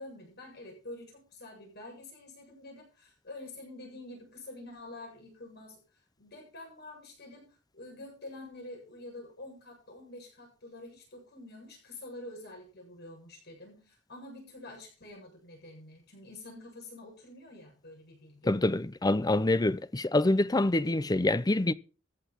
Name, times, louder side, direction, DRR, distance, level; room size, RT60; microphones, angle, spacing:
voice 1, 0.0-18.6, left 2 dB, 55° left, 7.9 m, -47 dB
voice 2, 18.5-21.7, left 2 dB, 20° left, 0.6 m, -26 dB
15.0 x 11.5 x 4.4 m
head